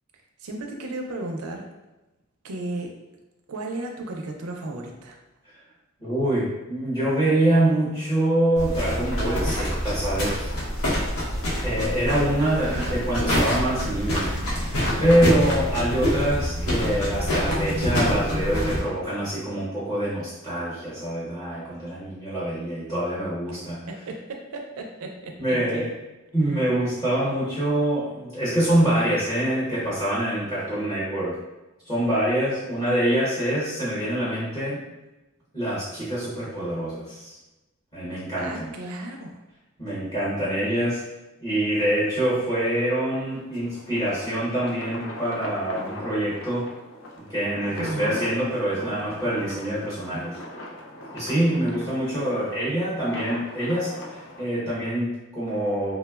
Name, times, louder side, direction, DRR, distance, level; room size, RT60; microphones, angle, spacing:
voice 1, 0.4-1.7 2.4-2.9 3.5-5.2 12.4-13.0 23.5-23.6 23.9-25.9 38.4-39.4 47.8-48.2, right 2 dB, 80° right, 2 dB, 0.4 m, -34 dB
voice 2, 6.0-10.5 11.6-14.7 15.0-23.9 25.4-25.9 26.3-31.4 31.8-34.8 35.5-37.4 37.9-38.7 39.8-41.0 41.4-46.7 47.3-50.4 51.1-55.9, right 1 dB, 20° left, -11 dB, 0.8 m, -25 dB
sound 1, 8.6-18.8, equal, 75° left, 0.8 m, -26 dB
sound 2, 43.2-54.5, left 1 dB, 60° left, 0.4 m, -40 dB
3.2 x 2.1 x 2.2 m, 1.0 s
head